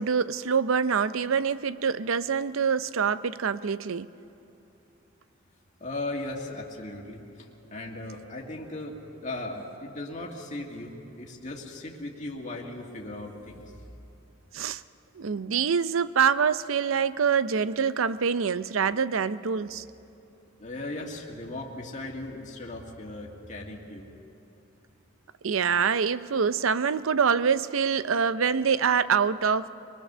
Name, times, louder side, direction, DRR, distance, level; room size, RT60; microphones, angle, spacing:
voice 1, 0.0-4.1 14.5-14.8 15.2-19.8 25.4-29.7, right 6 dB, 80° right, 15 dB, 0.6 m, -25 dB
voice 2, 5.8-13.8 20.6-24.1, left 2 dB, 35° left, -1 dB, 1.9 m, -37 dB
24.5 x 20.5 x 6.7 m, 2.7 s
head